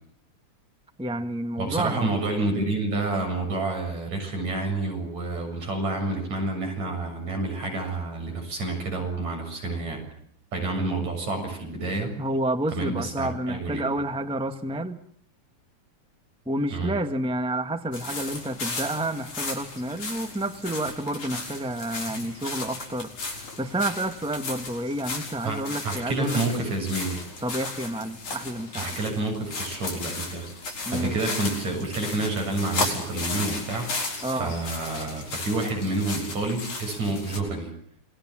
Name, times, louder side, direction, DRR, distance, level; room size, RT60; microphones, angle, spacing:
voice 1, 1.0-2.1 12.2-15.0 16.4-26.6 27.4-29.0 30.8-31.2 34.2-34.5, right 1 dB, 5° right, 8 dB, 0.7 m, -30 dB
voice 2, 1.6-10.0 10.5-12.2 12.7-13.9 16.7-16.9 22.1-22.2 25.4-27.2 28.8-30.5 30.9-33.9 34.3-37.7, right 2 dB, 70° right, 3 dB, 8.7 m, -29 dB
sound 1, 17.9-37.4, left 3 dB, 80° left, 7.7 m, -35 dB
28.5 x 21.0 x 7.5 m, 0.65 s
omnidirectional pair, 3.4 m